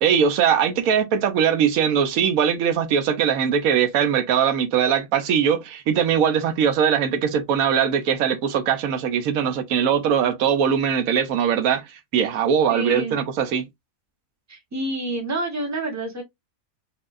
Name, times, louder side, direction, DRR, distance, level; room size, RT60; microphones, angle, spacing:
voice 1, 0.0-13.7, right 8 dB, 85° right, 1.1 m, -21 dB
voice 2, 12.7-13.2 14.5-16.2, right 1 dB, 15° right, 0.9 m, -28 dB
4.2 x 2.8 x 2.4 m
omnidirectional pair, 1.4 m